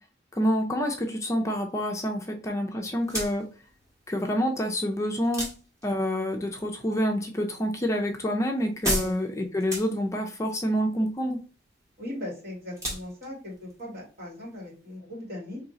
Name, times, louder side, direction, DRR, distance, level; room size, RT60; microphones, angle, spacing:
voice 1, 0.3-3.5 4.1-5.5 5.8-11.4, equal, 15° left, 3 dB, 0.5 m, -27 dB
sound 1, 2.9-15.0, right 1 dB, 20° right, 1.9 m, -38 dB
voice 2, 12.0-15.6, left 1 dB, 55° right, -4 dB, 2.3 m, -38 dB
3.7 x 3.1 x 3.9 m, 0.36 s
head